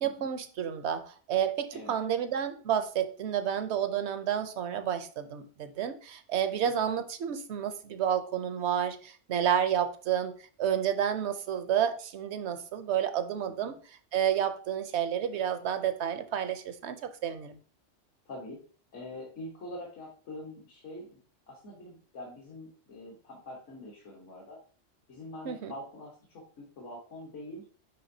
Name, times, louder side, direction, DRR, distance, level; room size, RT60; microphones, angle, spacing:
voice 1, 0.0-10.3 10.6-13.7 14.1-17.6 25.4-25.7, right 9 dB, 70° right, 10 dB, 0.9 m, -30 dB
voice 2, 18.2-18.6 18.9-21.2 21.5-24.6 25.1-27.7, left 1 dB, 75° left, -3 dB, 1.7 m, -44 dB
10.0 x 3.4 x 2.7 m, 0.42 s
omnidirectional pair, 1.2 m